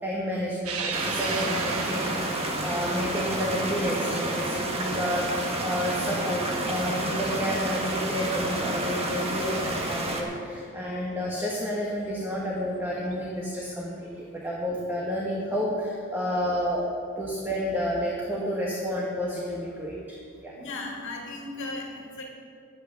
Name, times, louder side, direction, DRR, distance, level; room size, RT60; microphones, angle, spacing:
voice 1, 0.0-16.9 17.2-19.9 20.4-20.5, equal, 10° right, -4 dB, 1.3 m, -30 dB
sound 1, 0.6-7.3 7.8-7.9 9.1-9.2 11.4-11.5 12.9-13.1, right 4 dB, 80° right, 1.2 m, -37 dB
sound 2, 0.9-10.2, right 1 dB, 30° right, 1.4 m, -30 dB
voice 2, 20.6-22.3, left 2 dB, 60° left, 0 dB, 2.1 m, -36 dB
11.5 x 8.5 x 6.8 m, 2.4 s
head